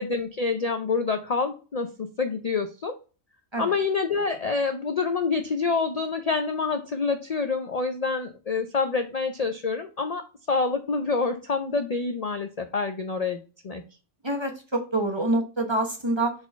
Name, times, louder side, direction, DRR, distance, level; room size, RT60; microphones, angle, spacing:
voice 1, 0.0-2.9 3.6-13.8, left 4 dB, 45° left, 7 dB, 0.5 m, -27 dB
voice 2, 14.2-16.3, right 2 dB, 25° right, 3 dB, 1.0 m, -26 dB
4.3 x 4.3 x 5.6 m, 0.34 s
omnidirectional pair, 1.4 m